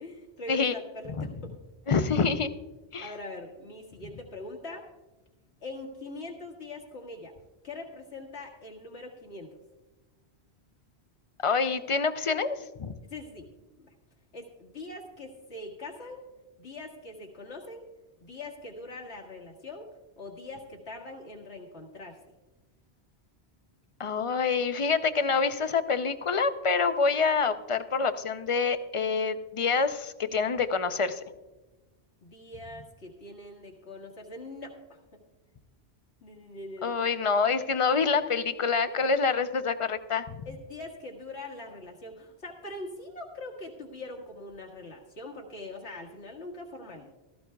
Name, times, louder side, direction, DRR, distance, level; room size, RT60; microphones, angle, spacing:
voice 1, 0.0-1.6 3.0-4.9 5.6-7.3 7.6-9.6 13.0-13.5 13.8-13.9 14.3-16.3 16.6-17.9 18.2-19.9 20.2-22.2 32.2-35.2 36.2-37.0 38.8-39.0 40.5-47.1, left 2 dB, 85° left, 0 dB, 2.0 m, -42 dB
voice 2, 1.9-2.5 2.9-3.1 11.4-12.9 24.0-31.2 36.8-40.4, left 5 dB, 40° left, 10 dB, 0.5 m, -26 dB
16.0 x 14.5 x 2.3 m, 1.1 s
omnidirectional pair, 1.1 m